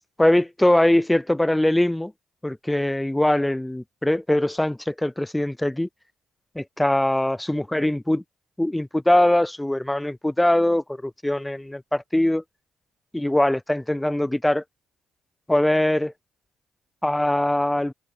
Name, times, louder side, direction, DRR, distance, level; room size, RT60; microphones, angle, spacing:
voice 1, 0.2-2.1 2.4-5.9 6.6-8.2 8.6-12.4 13.1-14.6 15.5-16.1 17.0-17.9, left 1 dB, 10° left, 0.6 m, -22 dB
supercardioid pair, 55°, 0 cm